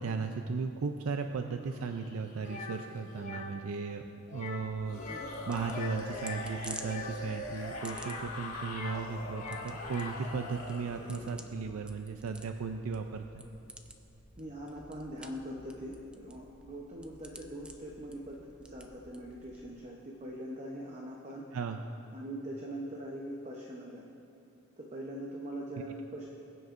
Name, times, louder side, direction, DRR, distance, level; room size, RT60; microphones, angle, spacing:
voice 1, 0.0-4.0 4.3-13.4 21.5-21.8, right 4 dB, 75° right, 6 dB, 0.4 m, -36 dB
sound 1, 1.6-3.3 4.8-11.4, left 1 dB, 75° left, 1.8 m, -43 dB
sound 2, 2.4-2.8 3.1-3.5 4.3-4.7 4.9-5.3 5.6-7.1 7.9-9.0 9.3-10.3, left 3 dB, 35° left, 0.8 m, -43 dB
sound 3, 4.6-19.8, right 1 dB, 5° right, 0.3 m, -52 dB
voice 2, 14.4-18.4 18.7-21.5 22.1-24.1 24.8-26.3, right 1 dB, 30° right, -2 dB, 0.8 m, -42 dB
21.5 x 7.7 x 2.6 m, 2.8 s
head